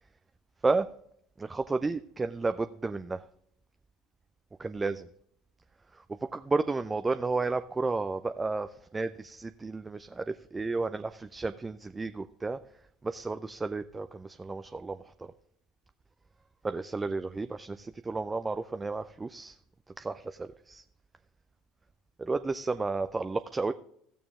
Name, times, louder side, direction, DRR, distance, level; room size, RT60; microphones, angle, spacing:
voice 1, 1.4-3.2 4.6-5.1 5.9-8.7 8.9-12.6 13.0-15.3 16.6-19.6 20.0-20.8 22.2-23.7, right 3 dB, 20° right, 10 dB, 0.4 m, -32 dB
15.0 x 6.8 x 3.6 m, 0.70 s
figure-of-eight pair, 65°, 0 cm